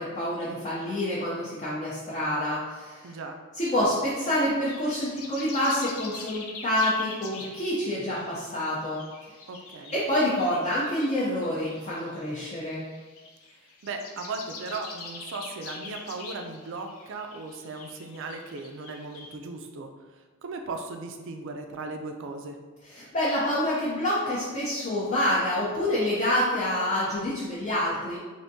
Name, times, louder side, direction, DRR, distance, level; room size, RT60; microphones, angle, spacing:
voice 1, 0.0-3.2 3.5-9.0 9.9-12.8 22.9-28.2, left 1 dB, 35° left, -8 dB, 0.6 m, -27 dB
voice 2, 3.0-3.3 9.5-9.9 13.8-19.9 20.4-22.6, right 3 dB, 60° right, 4 dB, 0.4 m, -37 dB
sound 1, 4.2-19.4, left 4 dB, 85° left, 0.5 m, -44 dB
3.4 x 2.6 x 2.6 m, 1.3 s
head